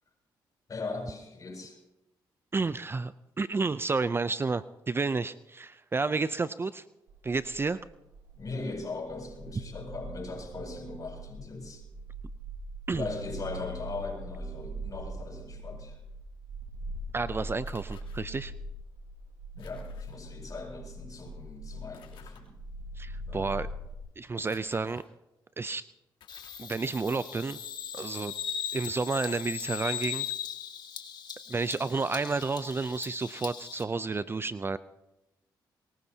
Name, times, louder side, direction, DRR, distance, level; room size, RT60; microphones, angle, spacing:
voice 1, 0.7-1.8 8.3-11.8 12.9-16.0 19.5-22.5 23.3-23.5, left 3 dB, 45° left, 0 dB, 7.6 m, -39 dB
voice 2, 2.5-6.8 7.2-7.8 12.9-13.0 17.1-18.5 23.0-23.7 24.2-25.0 25.6-25.9 26.6-27.6 27.9-28.3 28.7-30.2 31.5-34.8, right 4 dB, 25° right, 14 dB, 0.5 m, -31 dB
sound 1, 7.1-24.0, right 1 dB, 90° right, 1.7 m, -42 dB
sound 2, 17.7-18.2 19.6-20.1 21.9-22.4 24.4-25.1 25.6-25.7 26.2-26.7, left 7 dB, 85° left, 3.2 m, -55 dB
Bird vocalization bird call bird song, 26.3-33.8, left 9 dB, 60° left, 1.9 m, -39 dB
23.0 x 20.5 x 2.8 m, 0.95 s
cardioid pair, 80°, 8 cm